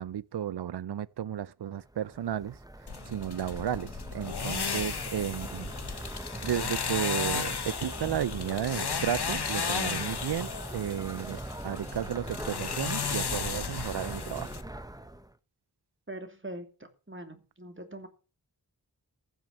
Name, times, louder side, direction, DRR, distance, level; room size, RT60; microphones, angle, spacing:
voice 1, 0.0-2.6 3.1-6.0 6.4-14.5, right 10 dB, 80° right, 0.5 m, -33 dB
sound 1, 1.8-15.3, right 1 dB, 10° right, 1.0 m, -41 dB
sound 2, 2.9-14.6, left 6 dB, 80° left, 1.0 m, -34 dB
voice 2, 16.1-16.7 17.1-18.1, right 1 dB, 30° right, 2.8 m, -42 dB
14.5 x 6.2 x 7.4 m
wide cardioid pair, 50°, 39 cm